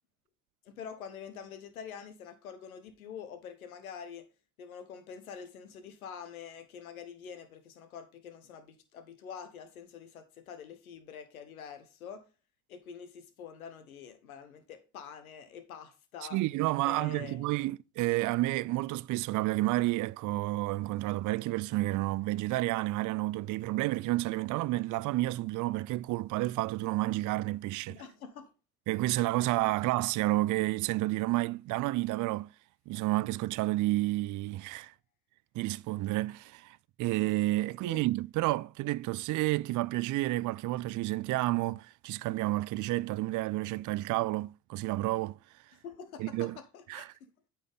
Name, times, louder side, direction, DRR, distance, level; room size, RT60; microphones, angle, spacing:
voice 1, 0.6-4.2 4.6-12.2 12.7-16.4 16.8-17.5 27.9-28.5 37.8-38.0 45.8-47.3, left 7 dB, 90° left, 1.2 m, -46 dB
voice 2, 16.3-28.0 28.9-32.5 32.9-34.9 35.5-45.4 46.2-46.6 46.9-47.1, right 18 dB, 50° right, 0.4 m, -30 dB
8.6 x 5.9 x 3.6 m
hypercardioid pair, 50°, 41 cm